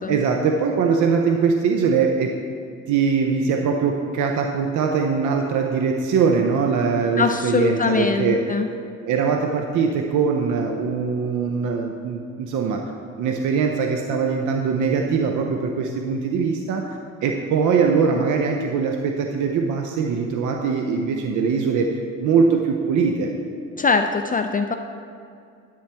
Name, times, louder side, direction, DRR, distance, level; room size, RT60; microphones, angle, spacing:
voice 1, 0.1-2.3 2.9-8.4 9.0-12.9 13.2-23.3, right 5 dB, 80° right, 3 dB, 0.7 m, -22 dB
voice 2, 7.2-8.7 23.8-24.8, left 4 dB, 30° left, 6 dB, 0.4 m, -22 dB
10.5 x 8.8 x 3.4 m, 2.4 s
cardioid pair, 90°, 30 cm